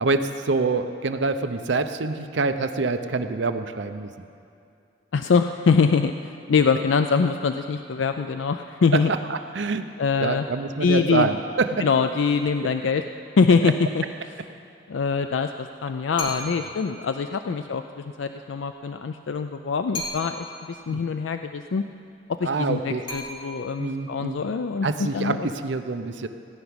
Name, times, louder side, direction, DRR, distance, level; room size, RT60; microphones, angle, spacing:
voice 1, 0.0-4.1 9.3-9.9 10.2-11.9 13.6-13.7 20.9-21.0 22.4-23.0 23.8-24.4 24.8-26.3, right 3 dB, 70° right, 8 dB, 0.7 m, -26 dB
voice 2, 5.1-9.1 10.0-10.5 10.8-11.4 11.8-13.1 13.4-14.4 14.9-21.8 22.3-25.5, left 5 dB, 80° left, 8 dB, 0.4 m, -24 dB
sound 1, 16.2-16.8 19.9-20.6 23.1-23.9, left 1 dB, 25° left, 2.9 m, -35 dB
17.0 x 5.9 x 9.6 m, 2.6 s
head